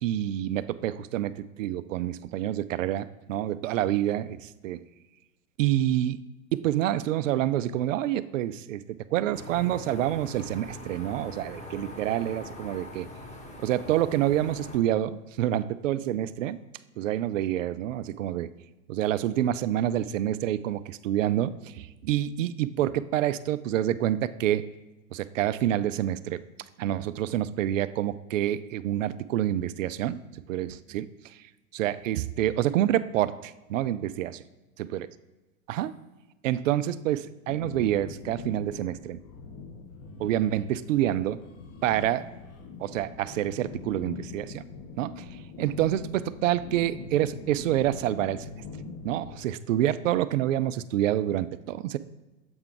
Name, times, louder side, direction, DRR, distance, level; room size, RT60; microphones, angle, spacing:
voice 1, 0.0-4.8 5.6-6.2 6.5-8.8 9.1-13.1 13.6-16.6 17.0-18.5 18.9-24.7 25.1-26.4 26.8-31.1 31.7-34.4 34.9-35.1 35.7-36.0 36.4-39.2 40.2-41.4 41.8-42.3 42.8-44.6 45.0-48.5 49.0-52.0, right 12 dB, 60° right, 15 dB, 0.5 m, -27 dB
sound 1, 9.3-14.8, left 1 dB, 15° left, 1.1 m, -42 dB
sound 2, 37.5-49.4, left 4 dB, 35° left, 0.9 m, -43 dB
7.9 x 4.5 x 3.7 m, 1.1 s
figure-of-eight pair, 95°, 43 cm